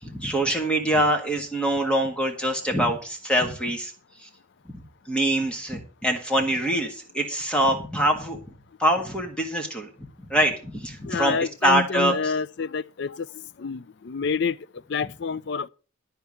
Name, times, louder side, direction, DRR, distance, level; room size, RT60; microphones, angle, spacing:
voice 1, 0.0-3.9 4.2-4.3 4.7-8.4 8.8-12.3, right 1 dB, 5° left, 1.6 m, -24 dB
voice 2, 11.0-13.1 13.6-14.5 14.9-15.7, left 5 dB, 55° left, 0.4 m, -27 dB
12.5 x 4.6 x 8.5 m
head